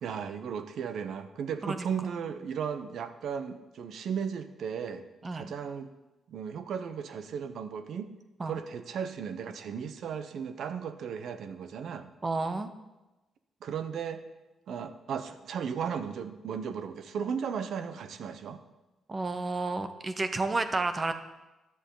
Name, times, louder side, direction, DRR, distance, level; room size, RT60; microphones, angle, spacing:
voice 1, 0.0-5.0 5.3-5.9 6.3-8.1 8.4-12.1 13.6-14.2 14.7-18.6, right 7 dB, 60° right, 10 dB, 0.8 m, -35 dB
voice 2, 12.2-12.7 19.1-21.1, right 3 dB, 20° right, 9 dB, 0.8 m, -31 dB
15.5 x 11.0 x 3.9 m, 1.1 s
cardioid pair, 165°, 0 cm